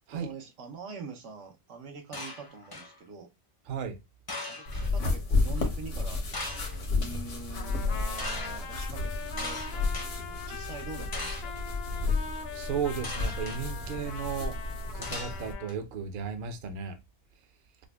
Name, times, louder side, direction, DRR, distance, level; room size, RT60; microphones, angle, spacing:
voice 1, 0.1-3.3 4.4-11.6, right 4 dB, 80° right, 1.1 m, -44 dB
sound 1, 2.1-2.9 4.3-4.9 6.3-6.9 8.2-8.5 9.4-10.1 11.1-11.6 13.0-13.6 15.0-15.7, left 2 dB, 30° left, 0.5 m, -38 dB
voice 2, 3.7-4.0 12.5-14.6 14.9-17.0, right 6 dB, 55° right, 0.6 m, -34 dB
sound 2, 4.7-15.5, left 3 dB, 80° left, 1.2 m, -32 dB
Trumpet, 7.5-15.7, left 6 dB, 65° left, 0.8 m, -42 dB
4.9 x 2.1 x 2.2 m
omnidirectional pair, 1.2 m